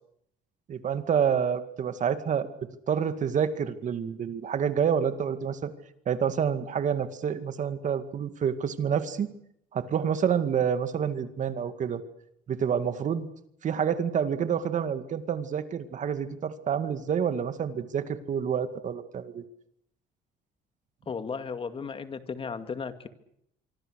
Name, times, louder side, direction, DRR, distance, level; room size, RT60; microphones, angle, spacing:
voice 1, 0.7-2.5 2.9-5.7 6.1-9.3 9.7-12.0 12.5-13.3 13.6-19.4, right 7 dB, 45° right, 10 dB, 2.1 m, -28 dB
voice 2, 21.1-23.1, left 5 dB, 35° left, 9 dB, 2.2 m, -35 dB
25.5 x 24.5 x 6.5 m, 0.75 s
cardioid pair, 110°, 17 cm